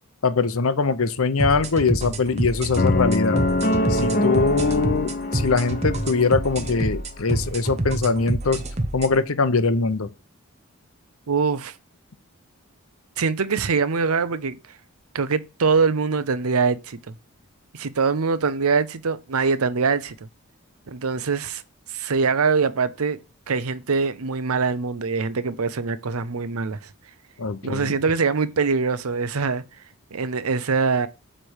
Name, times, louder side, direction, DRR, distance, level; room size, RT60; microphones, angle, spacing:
voice 1, 0.2-3.4 3.9-8.6 8.9-10.1 27.4-27.9, left 4 dB, 75° left, 0.7 m, -22 dB
sound 1, 1.4-9.1, right 1 dB, 30° right, 0.9 m, -28 dB
sound 2, 2.8-6.9, left 1 dB, 40° left, 0.9 m, -24 dB
voice 2, 11.3-11.7 13.2-14.6 15.1-17.1 17.7-20.2 20.9-21.6 21.9-23.2 23.5-26.9 27.6-29.6 30.1-31.1, right 5 dB, 90° right, 0.7 m, -23 dB
7.5 x 3.3 x 6.4 m
head